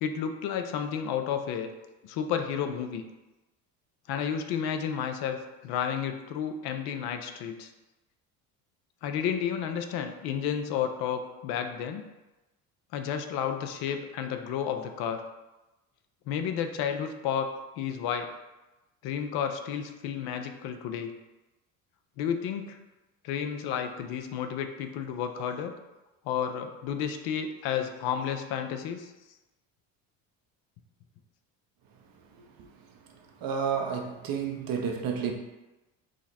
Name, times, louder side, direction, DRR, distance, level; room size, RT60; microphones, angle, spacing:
voice 1, 0.0-1.7 2.0-3.0 4.1-7.7 9.0-12.0 12.9-15.2 16.3-18.3 19.0-21.1 22.2-22.8 23.2-25.7 26.3-29.1, left 8 dB, 60° left, 6 dB, 0.6 m, -31 dB
voice 2, 33.4-35.3, right 7 dB, 55° right, 3 dB, 0.8 m, -30 dB
4.9 x 2.0 x 4.1 m, 1.0 s
hypercardioid pair, 70°, 42 cm